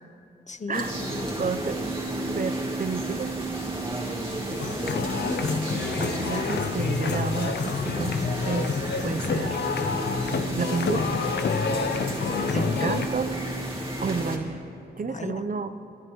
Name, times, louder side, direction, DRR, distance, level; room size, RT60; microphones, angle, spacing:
voice 1, 0.5-1.4 5.0-5.6 12.5-13.0 15.1-15.4, left 4 dB, 40° left, 10 dB, 0.8 m, -36 dB
sound 1, 0.7-14.4, right 2 dB, 30° right, 2.6 m, -32 dB
voice 2, 1.4-1.8 2.3-3.4 6.0-8.2 8.5-8.7 9.0-10.1 10.6-11.1 12.5-13.3 14.0-14.6 15.0-15.7, right 4 dB, 50° right, 10 dB, 0.7 m, -31 dB
sound 2, 4.5-13.1, left 5 dB, 75° left, 0.6 m, -28 dB
27.5 x 11.0 x 3.1 m, 2.9 s
cardioid pair, 50°, 18 cm